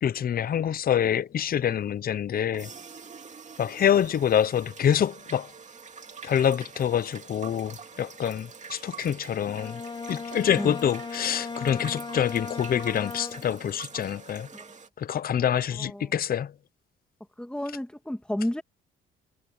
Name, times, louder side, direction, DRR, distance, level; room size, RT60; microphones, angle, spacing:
voice 1, 0.0-2.7 3.6-5.5 6.2-9.8 10.1-14.5 15.0-16.5, left 9 dB, 50° left, 0.7 m, -26 dB
sound 1, 2.5-14.9, right 5 dB, 35° right, 2.4 m, -45 dB
Bowed string instrument, 9.5-13.7, left 4 dB, 20° left, 1.0 m, -37 dB
voice 2, 15.8-16.1 17.4-18.6, left 1 dB, 5° left, 2.2 m, -32 dB
cardioid pair, 90°, 20 cm